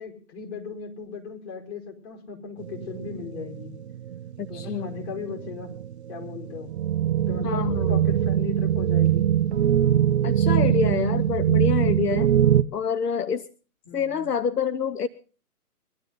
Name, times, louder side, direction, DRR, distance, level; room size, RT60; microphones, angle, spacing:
voice 1, 0.0-3.8 4.5-5.7 6.1-6.7 7.2-9.3 13.9-14.3, left 6 dB, 45° left, 2 dB, 5.3 m, -37 dB
sound 1, 2.6-12.6, right 10 dB, 45° right, 0.7 m, -23 dB
voice 2, 4.5-4.9 7.4-8.0 10.2-12.3 12.7-13.4 13.9-15.1, left 7 dB, 85° left, 15 dB, 0.9 m, -27 dB
22.0 x 12.0 x 4.0 m, 0.38 s
hypercardioid pair, 145°, 46 cm